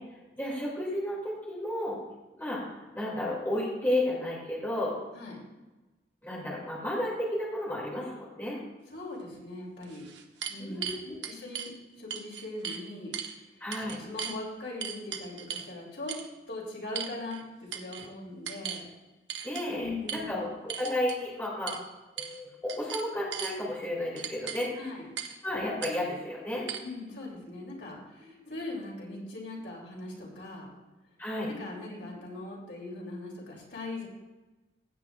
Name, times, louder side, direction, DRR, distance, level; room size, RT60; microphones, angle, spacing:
voice 1, 0.4-2.0 2.3-5.0 6.2-8.6 10.6-11.3 13.6-14.0 19.4-21.7 22.2-24.8 25.4-26.7 28.2-28.3 31.2-31.5, left 1 dB, 10° left, -5 dB, 2.4 m, -32 dB
voice 2, 8.9-10.1 10.5-13.1 14.0-16.2 16.5-18.8 19.8-20.5 24.8-25.1 26.8-30.7 31.5-34.1, left 2 dB, 75° left, -2 dB, 2.8 m, -40 dB
sound 1, 9.2-9.3 9.8-11.7 12.1-12.8 13.1-13.4 13.7-14.4 14.8-15.7 16.1-16.3 17.0-17.4 17.7-18.1 18.5-18.8 19.3-19.7 20.1-20.2 20.7-21.2 21.7-21.8 22.2-22.4 22.7-23.6 24.2-24.7 25.2-25.4 25.8-25.9 26.7-26.8, right 8 dB, 80° right, 0.9 m, -37 dB
16.0 x 8.3 x 2.4 m, 1.1 s
head